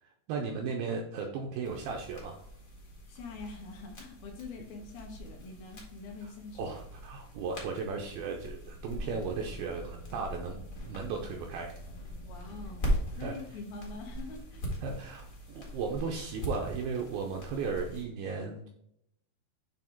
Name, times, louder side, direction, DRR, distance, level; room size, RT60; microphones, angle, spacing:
voice 1, 0.0-2.4 6.2-6.3 6.6-10.6 10.9-11.8 13.2-13.4 14.8-18.7, right 5 dB, 80° right, 1 dB, 2.2 m, -36 dB
sound 1, 1.6-18.0, equal, 45° left, 1.0 m, -40 dB
voice 2, 3.1-6.8 12.2-12.9 13.2-14.7, left 3 dB, 70° left, 2 dB, 2.6 m, -44 dB
8.5 x 3.3 x 4.4 m, 0.75 s
omnidirectional pair, 5.0 m